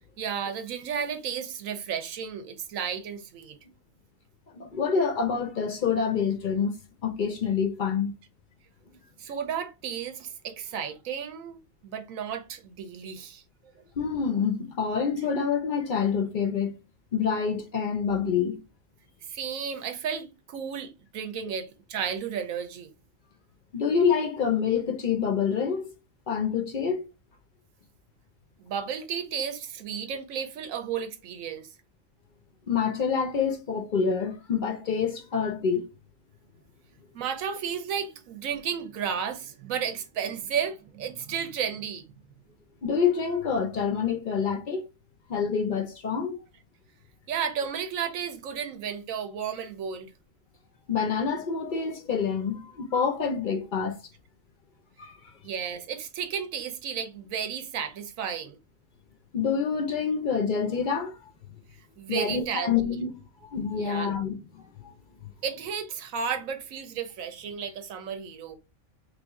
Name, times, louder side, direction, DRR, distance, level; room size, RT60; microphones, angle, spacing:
voice 1, 0.2-3.6 9.2-13.4 19.3-22.9 28.6-31.7 37.1-42.0 47.3-50.1 55.4-58.6 62.0-62.7 63.8-64.1 65.4-68.6, right 7 dB, 85° right, 1.1 m, -33 dB
voice 2, 4.5-8.1 14.0-16.7 17.1-18.6 23.7-25.9 26.3-27.1 32.7-35.9 42.8-44.9 45.3-46.4 50.9-54.0 55.0-55.2 59.3-61.1 62.1-63.2 63.5-64.9, left 6 dB, 60° left, 0.5 m, -27 dB
3.3 x 2.5 x 3.5 m
omnidirectional pair, 1.4 m